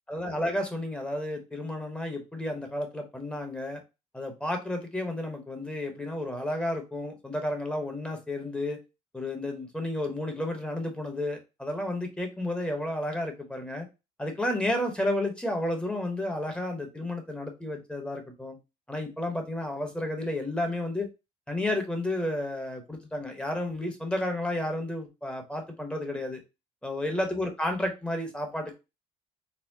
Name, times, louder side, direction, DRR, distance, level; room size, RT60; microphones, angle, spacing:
voice 1, 0.1-3.8 4.1-8.8 9.1-13.9 14.2-18.6 18.9-21.1 21.5-26.4 26.8-28.7, left 1 dB, 5° left, 4 dB, 1.1 m, -32 dB
4.2 x 2.1 x 2.7 m, 0.27 s
supercardioid pair, 95°, 14 cm